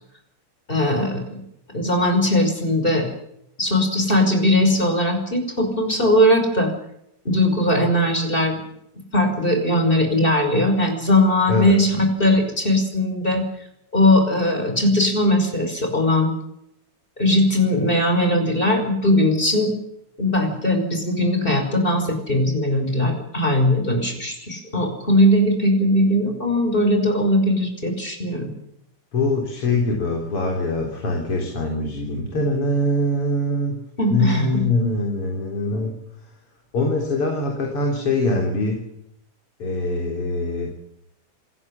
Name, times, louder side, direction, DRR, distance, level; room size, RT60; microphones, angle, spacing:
voice 1, 0.7-1.4 1.7-3.1 3.6-6.7 7.3-8.6 9.1-13.4 13.9-16.3 17.2-19.7 20.2-28.5 34.0-34.6, left 1 dB, 15° left, 5 dB, 5.5 m, -19 dB
voice 2, 29.1-33.8 34.1-35.9 36.7-38.9 39.6-40.7, left 2 dB, 45° left, 1 dB, 4.7 m, -23 dB
29.0 x 16.0 x 7.3 m, 0.77 s
omnidirectional pair, 3.5 m